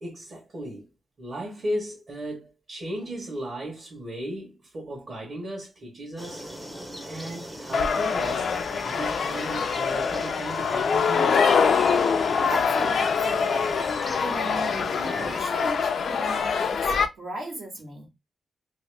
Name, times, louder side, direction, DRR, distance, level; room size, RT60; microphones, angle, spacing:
voice 1, 0.0-0.9 1.2-6.5 7.1-8.5 8.8-11.6, right 1 dB, 40° right, 1.2 m, -35 dB
sound 1, 6.2-15.4, equal, 10° right, 0.6 m, -39 dB
sound 2, 7.7-17.1, left 6 dB, 60° left, 0.4 m, -24 dB
voice 2, 12.4-13.7 14.2-18.1, right 2 dB, 65° right, 1.3 m, -37 dB
2.9 x 2.8 x 3.3 m
wide cardioid pair, 155°, 0 cm